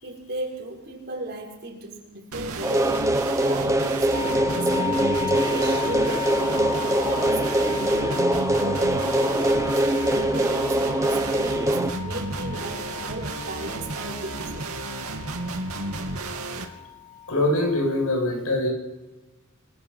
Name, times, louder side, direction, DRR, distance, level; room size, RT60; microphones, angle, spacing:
voice 1, 0.0-3.1 3.4-8.3 8.6-9.8 10.1-14.7, right 1 dB, 50° right, -1 dB, 6.0 m, -36 dB
sound 1, 2.3-16.6, right 2 dB, 80° right, 2.6 m, -33 dB
sound 2, 2.6-11.9, right 1 dB, 15° right, 1.1 m, -23 dB
sound 3, 4.1-18.1, left 11 dB, 20° left, 1.6 m, -36 dB
voice 2, 17.3-18.7, left 1 dB, 75° left, 2 dB, 8.0 m, -23 dB
28.0 x 21.5 x 5.9 m, 1.1 s
head